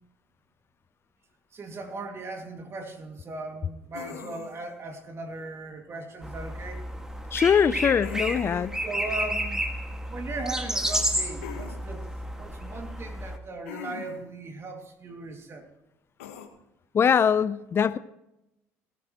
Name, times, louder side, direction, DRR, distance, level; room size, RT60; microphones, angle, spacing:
voice 1, 1.5-6.8 8.8-9.6 10.1-12.1 12.3-15.7, right 3 dB, 35° right, 4 dB, 2.4 m, -38 dB
sound 1, 3.9-4.7 8.0-8.8 11.4-11.8 13.7-14.3 16.2-16.5, left 9 dB, 85° left, 1.5 m, -40 dB
sound 2, 6.2-13.4, equal, 10° right, 2.0 m, -31 dB
voice 2, 7.3-8.7 16.9-18.0, left 7 dB, 35° left, 15 dB, 0.6 m, -22 dB
19.5 x 13.5 x 3.1 m, 0.87 s
hypercardioid pair, 70°, 7 cm